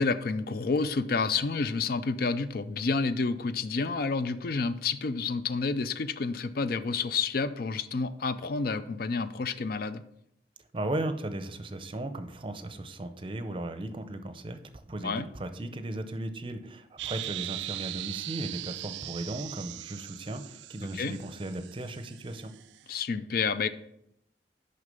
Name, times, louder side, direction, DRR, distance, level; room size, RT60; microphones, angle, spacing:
voice 1, 0.0-10.0 15.0-15.3 20.9-21.1 22.9-23.7, left 4 dB, 55° left, 13 dB, 0.4 m, -29 dB
voice 2, 10.7-14.6 14.9-22.5, right 1 dB, 30° right, 9 dB, 0.6 m, -36 dB
sound 1, 17.0-22.8, right 16 dB, 80° right, 0.3 m, -40 dB
6.5 x 5.6 x 5.2 m, 0.76 s
head